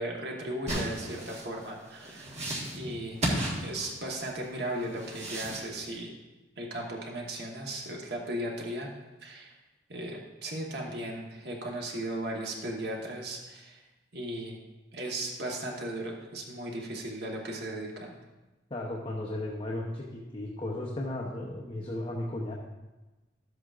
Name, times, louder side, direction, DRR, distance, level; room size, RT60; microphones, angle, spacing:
voice 1, 0.0-2.4 2.7-3.2 3.6-6.1 6.6-8.9 9.2-9.5 9.9-13.8 14.1-14.6 14.9-18.1, right 1 dB, 60° right, -1 dB, 1.4 m, -36 dB
sound 1, 0.7-4.3 4.8-5.7, right 1 dB, 35° right, 1.6 m, -34 dB
voice 2, 18.7-22.5, left 1 dB, 30° left, -2 dB, 0.9 m, -35 dB
12.5 x 7.9 x 2.5 m, 1.1 s
head